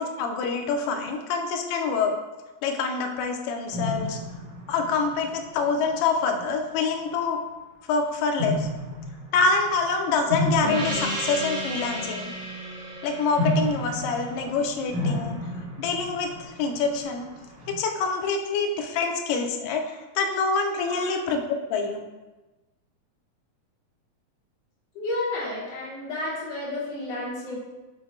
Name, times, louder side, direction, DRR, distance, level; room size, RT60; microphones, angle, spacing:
voice 1, 0.0-2.1 2.6-4.2 4.7-7.4 7.9-8.7 9.3-12.3 13.0-15.4 15.8-17.3 17.7-22.1, left 4 dB, 80° left, 4 dB, 1.7 m, -26 dB
sound 1, 3.7-6.0 6.7-7.0 8.4-12.5 13.4-17.8, left 1 dB, 75° right, 1.8 m, -32 dB
Gong, 10.6-15.6, equal, 45° right, 1.1 m, -34 dB
voice 2, 24.9-27.5, left 2 dB, 60° left, -7 dB, 2.4 m, -31 dB
5.9 x 2.1 x 3.9 m, 1.1 s
omnidirectional pair, 3.5 m